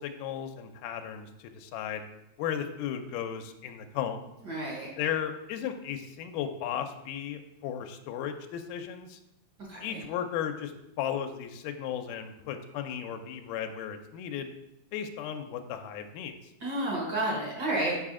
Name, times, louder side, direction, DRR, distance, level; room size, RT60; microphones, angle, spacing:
voice 1, 0.0-2.0 2.4-4.2 5.0-9.2 9.8-14.5 14.9-16.3, left 9 dB, 90° left, 6 dB, 2.2 m, -35 dB
voice 2, 4.5-4.9 9.7-10.0 16.6-18.0, right 1 dB, 60° right, -3 dB, 1.1 m, -31 dB
6.9 x 4.9 x 3.6 m, 0.87 s
omnidirectional pair, 3.7 m